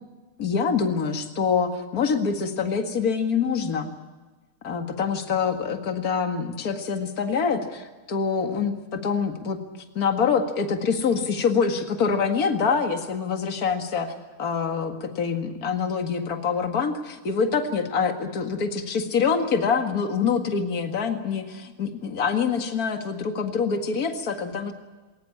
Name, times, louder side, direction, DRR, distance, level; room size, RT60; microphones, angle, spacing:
voice 1, 0.4-3.9 4.6-8.7 9.0-9.6 10.0-14.1 14.4-24.7, left 5 dB, 45° left, 5 dB, 2.3 m, -25 dB
21.0 x 19.5 x 8.7 m, 1.2 s
omnidirectional pair, 2.3 m